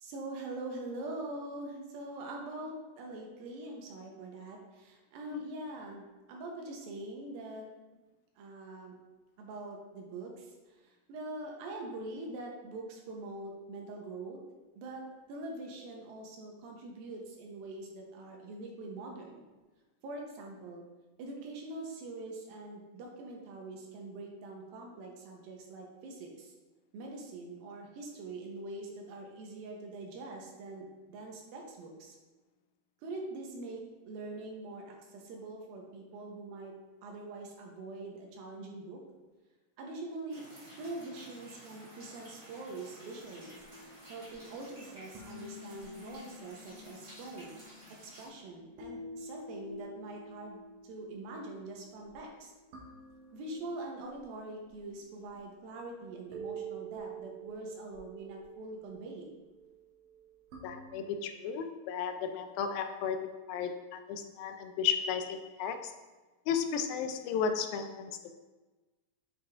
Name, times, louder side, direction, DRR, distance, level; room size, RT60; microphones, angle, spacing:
voice 1, 0.0-7.7 8.4-8.9 9.4-10.8 11.1-14.4 14.8-15.0 15.3-19.4 20.0-20.8 21.2-26.5 26.9-32.2 33.0-36.7 37.0-39.0 39.8-40.5 40.8-43.6 44.1-47.6 48.0-52.5 53.3-59.3, right 2 dB, 85° right, 0 dB, 2.7 m, -43 dB
sound 1, 40.3-48.3, right 1 dB, 30° right, 1.8 m, -53 dB
sound 2, 43.2-60.9, right 2 dB, 70° right, 1.5 m, -49 dB
voice 2, 60.6-65.9 66.5-68.1, left 7 dB, 85° left, 7 dB, 2.4 m, -34 dB
9.0 x 4.7 x 2.5 m, 1.2 s
omnidirectional pair, 4.1 m